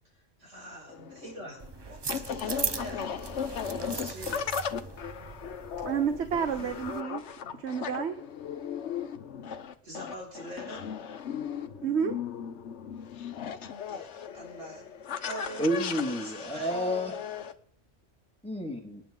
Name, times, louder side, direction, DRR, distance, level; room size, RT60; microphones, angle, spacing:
voice 1, 0.1-3.1 3.7-4.5 9.6-10.9 13.9-14.8 15.2-15.7 16.0-16.7, right 1 dB, 80° right, -2 dB, 6.4 m, -44 dB
sound 1, 0.9-17.5, left 7 dB, 70° left, 1.2 m, -37 dB
sound 2, 1.6-7.0, right 5 dB, 40° right, 0.4 m, -39 dB
voice 2, 5.8-7.2 7.6-8.2 11.8-12.2, right 7 dB, 65° right, 8 dB, 1.3 m, -29 dB
voice 3, 15.6-17.1 18.4-19.0, equal, 5° left, 2 dB, 2.2 m, -30 dB
26.5 x 9.8 x 3.8 m, 0.63 s
omnidirectional pair, 1.2 m